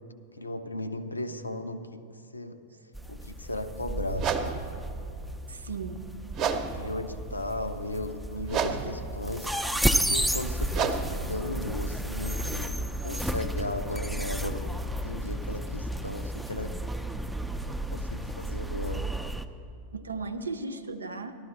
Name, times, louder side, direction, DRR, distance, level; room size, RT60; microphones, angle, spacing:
voice 1, 0.4-2.0 2.3-2.6 3.1-4.7 6.7-9.5 10.1-12.7 13.0-14.7 15.0-16.8 17.7-19.1, left 1 dB, 80° left, 9 dB, 0.6 m, -36 dB
sound 1, 2.9-19.5, right 1 dB, 5° right, 0.5 m, -32 dB
sound 2, 4.1-12.9, right 6 dB, 35° right, 0.8 m, -34 dB
voice 2, 5.5-6.0 19.9-21.4, right 4 dB, 75° right, 9 dB, 0.7 m, -36 dB
14.5 x 12.0 x 4.0 m, 2.5 s
figure-of-eight pair, 90°, 0 cm